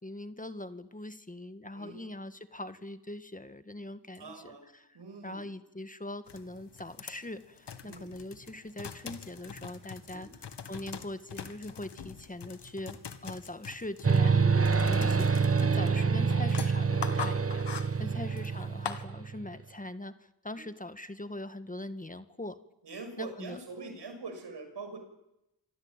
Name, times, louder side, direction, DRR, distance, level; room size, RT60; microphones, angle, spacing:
voice 1, 0.0-5.0 5.2-22.6 23.2-23.6, left 1 dB, 20° left, 11 dB, 1.7 m, -42 dB
voice 2, 4.2-4.7 4.9-5.4 7.8-8.1 10.1-10.3 16.0-16.1 18.0-18.2 20.5-20.6 22.8-25.0, right 3 dB, 80° right, 7 dB, 6.1 m, -44 dB
sound 1, 6.3-19.0, left 7 dB, 80° left, 2.0 m, -43 dB
sound 2, 14.0-19.5, right 5 dB, 35° right, 1.1 m, -26 dB
26.5 x 22.0 x 9.1 m, 0.87 s
cardioid pair, 65°, 41 cm